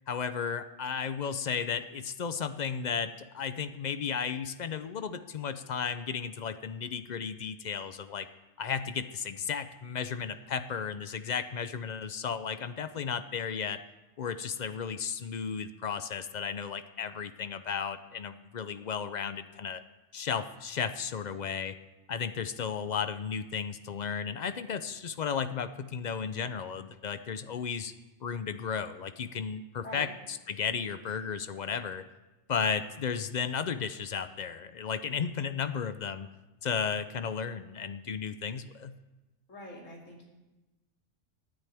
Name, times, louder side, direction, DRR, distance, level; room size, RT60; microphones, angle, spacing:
voice 1, 0.1-8.3 8.6-13.8 14.2-19.8 20.1-21.8 22.1-27.9 28.2-32.0 32.5-36.3 36.6-38.9, left 6 dB, 55° left, 11 dB, 0.5 m, -34 dB
voice 2, 39.5-40.3, left 1 dB, 75° left, -2 dB, 3.0 m, -44 dB
23.5 x 9.6 x 3.5 m, 1.1 s
omnidirectional pair, 1.3 m